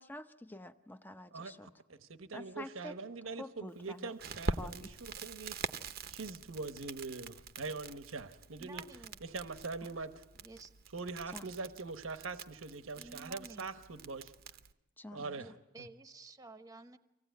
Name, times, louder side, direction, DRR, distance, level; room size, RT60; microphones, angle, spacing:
voice 1, 0.0-1.7 2.3-2.9 3.4-4.1 4.6-4.9 11.3-11.4 15.0-15.4, left 1 dB, 10° left, 9 dB, 0.7 m, -47 dB
voice 2, 1.3-5.5 6.1-8.8 9.2-10.2 10.9-14.3 15.1-15.5 15.8-15.9, right 3 dB, 85° right, 9 dB, 1.1 m, -43 dB
Crackle, 4.2-14.7, right 4 dB, 50° right, 0.8 m, -44 dB
voice 3, 8.6-9.2 10.4-10.8 13.0-13.8 15.3-17.0, right 2 dB, 15° right, 9 dB, 1.0 m, -52 dB
25.0 x 17.5 x 9.2 m, 0.99 s
head